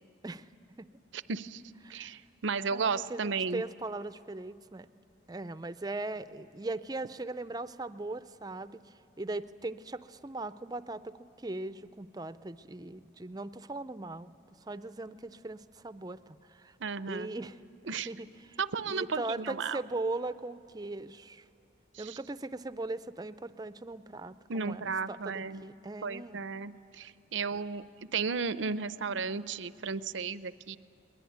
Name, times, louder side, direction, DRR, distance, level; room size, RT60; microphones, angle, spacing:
voice 1, 1.1-1.6 1.9-3.6 16.8-17.3 17.9-18.1 18.6-19.8 21.9-22.2 24.5-25.6 26.0-27.9 28.1-30.8, right 5 dB, 80° right, 15 dB, 0.6 m, -34 dB
voice 2, 1.8-2.2 2.7-4.9 5.3-14.3 14.7-16.8 17.1-17.6 18.1-18.6 18.9-21.5 22.0-26.4 27.5-27.6, right 2 dB, 20° right, 13 dB, 0.5 m, -39 dB
22.0 x 20.5 x 9.4 m, 2.5 s
head